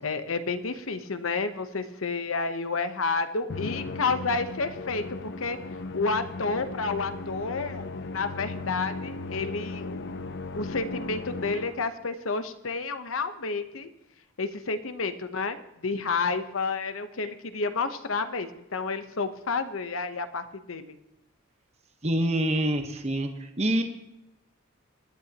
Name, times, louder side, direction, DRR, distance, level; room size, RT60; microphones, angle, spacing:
voice 1, 0.0-5.0 5.4-5.6 5.9-10.1 10.5-13.9 14.4-21.0, left 4 dB, 75° left, 10 dB, 1.0 m, -30 dB
Musical instrument, 3.5-12.0, left 3 dB, 55° left, 0.5 m, -37 dB
voice 2, 22.0-23.3 23.6-23.8, right 1 dB, 30° right, 5 dB, 1.2 m, -25 dB
20.0 x 12.0 x 2.9 m, 0.90 s
head